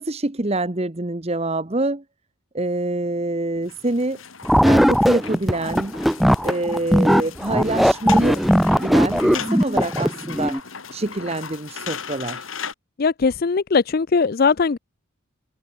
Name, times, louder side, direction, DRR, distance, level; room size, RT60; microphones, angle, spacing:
voice 1, 0.0-2.0 2.5-4.2 4.7-5.9 6.4-8.4 8.7-12.5, right 2 dB, 30° right, 1.1 m, -26 dB
sound 1, 3.6-12.7, left 6 dB, 70° left, 3.1 m, -37 dB
sound 2, 4.4-10.6, equal, ahead, 0.8 m, -18 dB
voice 2, 13.0-14.8, left 4 dB, 45° left, 0.4 m, -19 dB
head